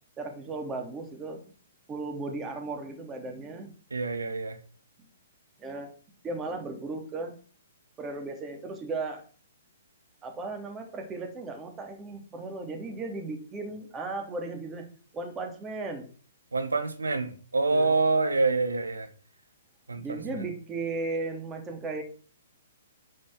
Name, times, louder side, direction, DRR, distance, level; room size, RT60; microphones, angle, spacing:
voice 1, 0.2-1.4 1.9-3.7 5.6-5.9 6.2-7.3 8.0-9.2 10.2-14.9 15.1-16.1 17.7-17.9 20.0-22.0, right 3 dB, 15° right, 2.9 m, -36 dB
voice 2, 3.9-4.6 16.5-19.1 19.9-20.4, right 3 dB, 90° right, 1.6 m, -27 dB
11.0 x 5.3 x 7.5 m
hypercardioid pair, 125°, 0 cm